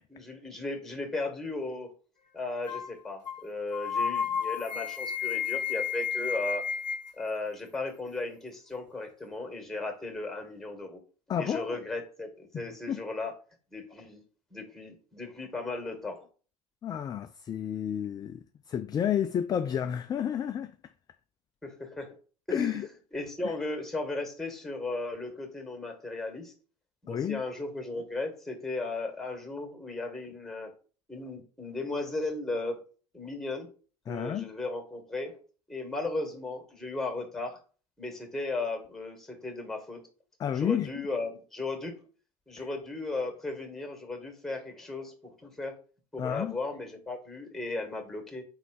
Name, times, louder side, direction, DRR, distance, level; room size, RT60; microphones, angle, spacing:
voice 1, 0.1-1.9 2.3-6.6 7.2-11.0 11.4-13.3 13.7-14.2 14.5-16.3 21.6-22.1 22.5-26.5 27.0-30.7 31.1-32.8 33.1-33.7 34.1-35.4 35.7-37.6 38.0-40.1 40.5-41.9 42.5-45.8 46.1-48.4, left 2 dB, ahead, 2.2 m, -36 dB
sound 1, 2.7-2.9 3.3-3.4 3.7-7.1, left 7 dB, 85° left, 0.6 m, -31 dB
voice 2, 11.3-11.8 12.5-13.0 16.8-20.7 22.5-22.9 23.4-23.5 27.1-27.4 34.1-34.5 40.4-40.9 42.6-42.7 46.2-46.6, left 9 dB, 20° left, 0.3 m, -31 dB
4.7 x 4.0 x 5.5 m
figure-of-eight pair, 75°, 21 cm